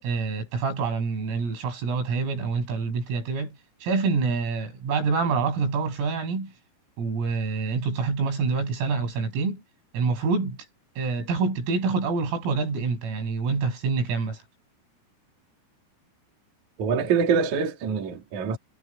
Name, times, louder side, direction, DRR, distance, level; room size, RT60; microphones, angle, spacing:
voice 1, 0.0-6.5 7.0-9.6 9.9-10.7 11.0-14.4, right 4 dB, 90° right, 9.4 m, -26 dB
voice 2, 16.8-18.6, right 6 dB, 45° right, 3.3 m, -24 dB
omnidirectional pair, 5.9 m